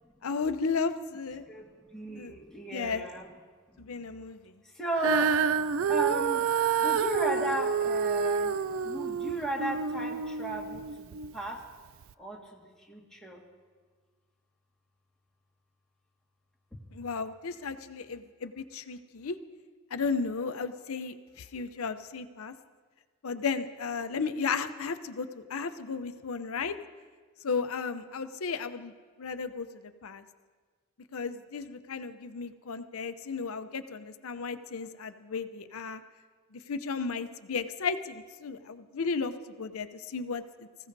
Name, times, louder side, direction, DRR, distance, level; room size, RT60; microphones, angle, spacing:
voice 1, 0.2-1.4 2.1-2.3 2.7-3.1 3.8-4.4 16.9-19.4 19.9-22.5 23.2-26.8 27.4-28.9 29.2-29.7 30.0-30.2 31.1-36.0 36.7-39.3 39.6-40.7, left 5 dB, 75° left, 9 dB, 0.6 m, -34 dB
voice 2, 1.5-3.3 3.9-4.0 4.7-5.4 5.9-6.5 6.8-8.6 8.8-11.1 11.3-11.6 12.2-13.4, right 2 dB, 5° left, -3 dB, 1.8 m, -35 dB
Female singing, 5.0-11.3 12.0-12.1, right 6 dB, 65° right, 0.4 m, -28 dB
25.0 x 15.5 x 2.7 m, 1.5 s
head